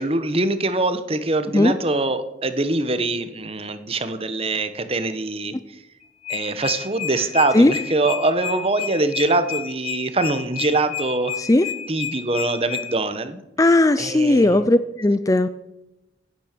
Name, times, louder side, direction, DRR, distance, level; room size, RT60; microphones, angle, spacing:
voice 1, 0.0-5.5 6.3-11.4 11.9-13.4 14.0-14.6, right 2 dB, 30° right, 11 dB, 1.1 m, -23 dB
sound 1, 6.0-12.8, left 10 dB, 40° left, 5.5 m, -30 dB
voice 2, 11.4-11.7 13.6-15.5, left 2 dB, 20° left, 13 dB, 0.4 m, -17 dB
16.0 x 9.3 x 6.7 m, 0.94 s
head